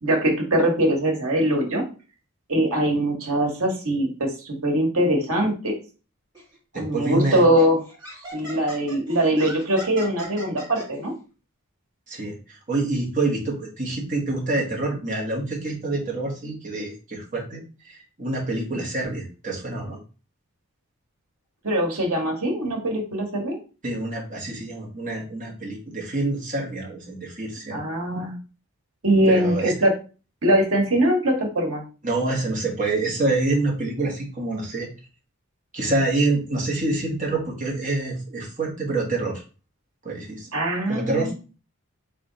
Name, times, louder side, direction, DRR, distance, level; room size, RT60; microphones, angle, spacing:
voice 1, 0.0-1.8 2.5-5.7 6.7-7.8 8.3-11.1 21.6-23.6 27.7-28.4 29.0-29.9 30.4-31.8 40.5-41.3, right 1 dB, 75° right, 1 dB, 1.5 m, -22 dB
Laughter, 6.3-6.6 7.2-10.8, equal, 20° right, 2.2 m, -39 dB
voice 2, 6.7-7.4 12.1-20.0 23.8-27.8 29.3-29.7 32.0-34.9 35.7-39.4 40.0-40.5 40.9-41.3, right 2 dB, 35° right, -1 dB, 1.4 m, -27 dB
3.5 x 3.4 x 4.0 m, 0.34 s
head